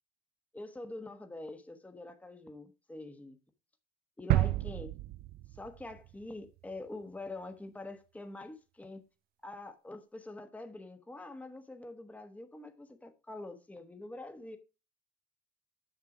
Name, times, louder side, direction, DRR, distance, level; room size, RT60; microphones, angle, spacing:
voice 1, 0.5-3.4 4.2-4.9 5.5-9.0 9.4-14.6, left 2 dB, 10° left, 1.1 m, -45 dB
sound 1, 4.3-6.2 6.6-6.7, right 16 dB, 65° right, 0.4 m, -31 dB
6.9 x 6.6 x 4.9 m
cardioid pair, 110°, 17 cm